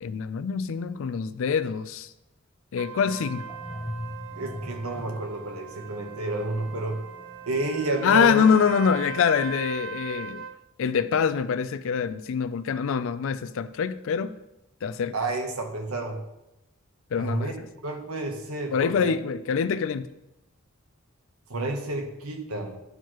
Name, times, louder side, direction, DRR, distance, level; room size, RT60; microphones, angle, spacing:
voice 1, 0.0-2.1 2.7-3.4 8.0-10.4 10.8-14.4 14.8-15.1 17.1-17.5 18.7-20.1, left 6 dB, 65° left, 0.4 m, -25 dB
Trumpet, 2.8-10.6, right 6 dB, 55° right, 0.4 m, -40 dB
sound 1, 3.0-9.1, left 1 dB, 5° right, 0.9 m, -42 dB
voice 2, 4.4-7.0 7.5-8.4 15.1-16.2 17.1-17.5 17.8-19.1 21.5-22.8, right 2 dB, 80° right, 1.0 m, -30 dB
10.5 x 4.6 x 3.0 m
head